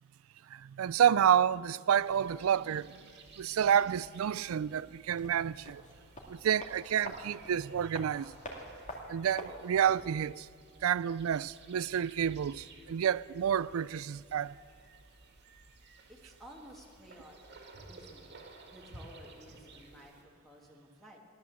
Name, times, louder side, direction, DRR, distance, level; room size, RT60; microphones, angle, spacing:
voice 1, 0.5-3.1 3.4-5.8 6.3-8.3 9.1-10.5 10.8-14.6, right 9 dB, 80° right, 0.4 m, -29 dB
sound 1, 1.9-20.2, right 3 dB, 55° right, 2.0 m, -55 dB
sound 2, 5.1-10.1 10.4-10.5, equal, 35° left, 2.3 m, -46 dB
voice 2, 16.1-17.6 17.9-21.2, equal, ahead, 1.7 m, -54 dB
17.0 x 11.5 x 7.4 m
head